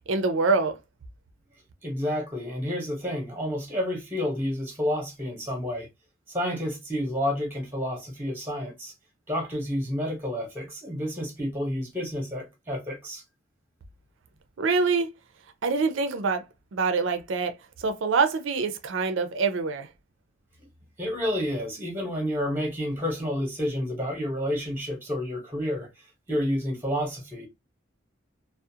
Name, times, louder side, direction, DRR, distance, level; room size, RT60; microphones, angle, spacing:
voice 1, 0.1-0.8 14.6-15.1 15.6-16.4 16.7-17.5 17.8-19.9, right 4 dB, 70° right, 0.4 m, -25 dB
voice 2, 1.8-5.9 6.3-8.9 9.3-13.2 21.0-25.9 26.3-27.4, equal, 10° right, 0.8 m, -30 dB
2.4 x 2.0 x 2.7 m
head